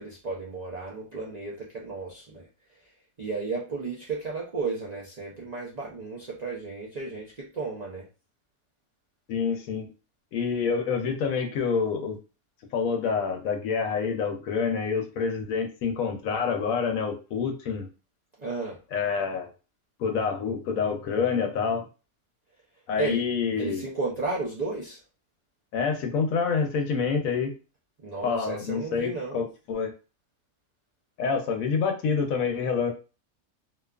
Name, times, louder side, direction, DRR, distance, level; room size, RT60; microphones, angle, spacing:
voice 1, 0.0-2.5 3.2-8.1 18.4-18.8 23.0-23.3 23.6-25.0 28.0-29.5, right 3 dB, 90° right, -3 dB, 0.3 m, -33 dB
voice 2, 9.3-9.9 10.3-12.2 12.7-17.9 18.9-19.5 20.0-21.9 22.9-23.8 25.7-27.5 28.2-29.9 31.2-32.9, left 5 dB, 75° left, 4 dB, 1.0 m, -27 dB
2.7 x 2.3 x 2.3 m, 0.32 s
omnidirectional pair, 1.5 m